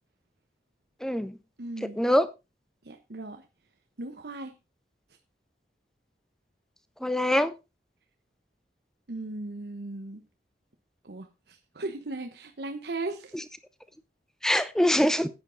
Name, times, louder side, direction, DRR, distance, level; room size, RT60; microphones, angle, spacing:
voice 1, 1.0-1.4 2.0-2.3 7.0-7.5 14.4-15.3, equal, 5° left, 0.6 m, -23 dB
voice 2, 1.6-2.0 2.8-3.5 4.0-4.5 9.1-10.2 11.0-13.3, right 2 dB, 75° right, 1.0 m, -37 dB
9.9 x 9.4 x 3.9 m
head